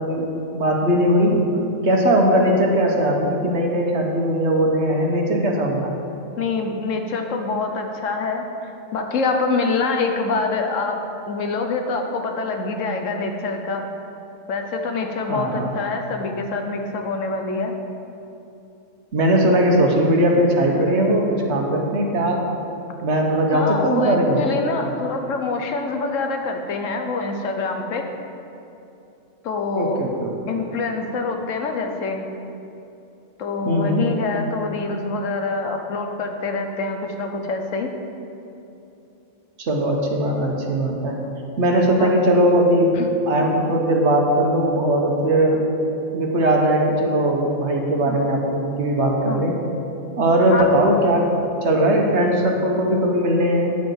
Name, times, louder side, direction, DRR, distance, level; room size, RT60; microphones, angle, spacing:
voice 1, 0.0-1.4 1.8-5.9 15.3-15.7 19.1-22.5 23.0-24.4 29.8-30.5 33.6-34.0 39.6-41.2 41.6-42.9 43.3-45.8 46.1-49.6 50.2-51.3 51.6-53.8, right 1 dB, 65° right, 0 dB, 1.4 m, -19 dB
voice 2, 6.4-11.0 11.3-13.8 14.5-17.7 23.5-28.0 29.4-30.0 30.5-32.3 33.4-37.9 42.0-42.2 42.9-43.1 48.1-48.2 49.2-49.5 50.5-50.6, left 3 dB, 80° left, 4 dB, 1.2 m, -25 dB
9.4 x 7.4 x 4.6 m, 2.8 s
omnidirectional pair, 1.3 m